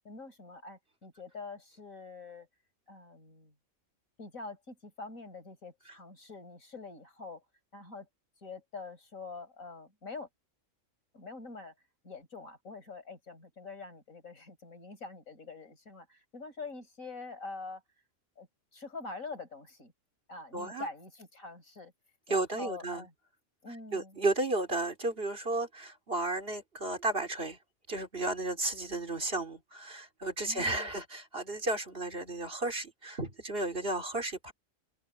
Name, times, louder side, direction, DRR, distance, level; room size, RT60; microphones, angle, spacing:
voice 1, 0.0-2.5 2.9-3.5 4.2-7.4 7.7-8.1 8.4-10.3 11.1-11.7 12.0-17.8 18.4-18.5 18.7-19.9 20.3-21.9 22.3-23.1 23.6-24.2 30.5-30.9, left 3 dB, 90° left, 5.6 m, -45 dB
voice 2, 20.5-20.9 22.3-23.1 23.9-27.6 27.9-34.5, right 2 dB, 45° right, 3.3 m, -33 dB
open air
omnidirectional pair, 1.4 m